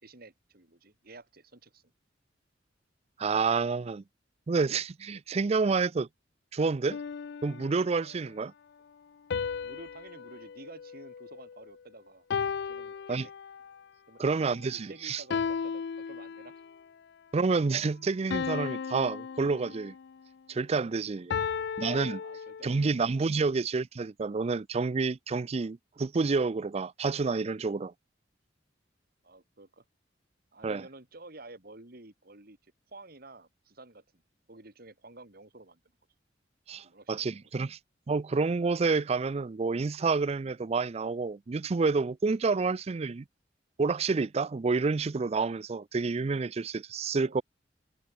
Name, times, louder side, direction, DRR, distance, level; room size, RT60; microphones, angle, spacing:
voice 1, 0.0-1.8 8.4-8.5 9.6-12.3 12.6-13.3 14.1-14.2 14.5-16.6 21.4-21.7 22.2-22.9 23.4-23.5 29.2-29.8 30.5-34.0 34.5-35.8 36.8-37.5 47.1-47.4, right 2 dB, 55° right, 2.8 m, -51 dB
voice 2, 3.2-4.0 4.5-6.1 6.5-7.0 7.4-8.5 13.1-13.3 14.2-15.2 17.3-19.9 20.5-21.4 21.8-22.2 22.6-27.9 30.6-30.9 36.7-37.8 38.1-43.2 43.8-47.4, right 4 dB, 35° right, 0.4 m, -29 dB
sound 1, 6.9-8.1 9.3-11.7 12.3-13.8 15.3-16.8 18.3-20.2 21.3-22.9, left 6 dB, 60° left, 0.4 m, -35 dB
head